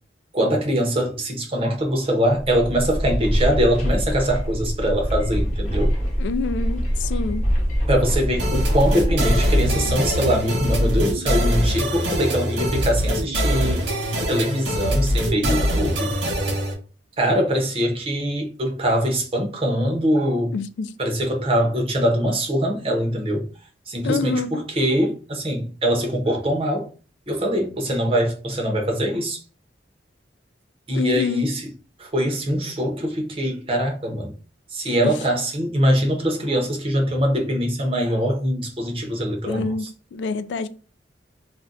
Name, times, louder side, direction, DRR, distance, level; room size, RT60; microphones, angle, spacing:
voice 1, 0.3-5.9 7.9-13.8 14.3-16.1 17.2-20.5 21.0-23.5 23.9-26.9 27.3-29.4 30.9-31.7 32.0-34.4 34.7-39.7, equal, 30° right, 0.7 m, -23 dB
sound 1, 2.3-10.8, equal, 40° left, 0.9 m, -24 dB
voice 2, 6.2-7.5 20.5-20.9 24.0-24.7 30.9-31.5 35.0-35.2 39.5-40.7, left 4 dB, 85° left, 0.3 m, -27 dB
sound 2, 8.4-16.7, equal, 85° right, 0.8 m, -23 dB
2.5 x 2.1 x 3.7 m
head